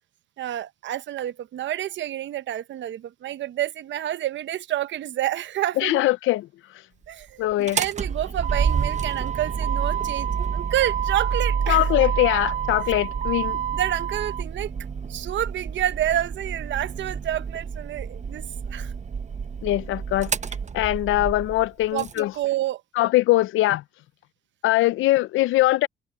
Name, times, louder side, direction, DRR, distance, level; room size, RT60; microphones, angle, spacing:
voice 1, 0.4-6.0 7.1-11.9 13.7-14.7 15.1-18.4 18.7-18.9 21.9-22.8, right 12 dB, 70° right, 0.9 m, -29 dB
voice 2, 5.8-6.5 7.4-7.8 11.7-13.6 19.6-20.3 20.7-22.3 23.0-23.8 24.6-25.9, left 17 dB, 85° left, 0.5 m, -21 dB
Motor vehicle (road), 7.5-22.2, right 7 dB, 35° right, 0.9 m, -28 dB
cardioid pair, 90°, 20 cm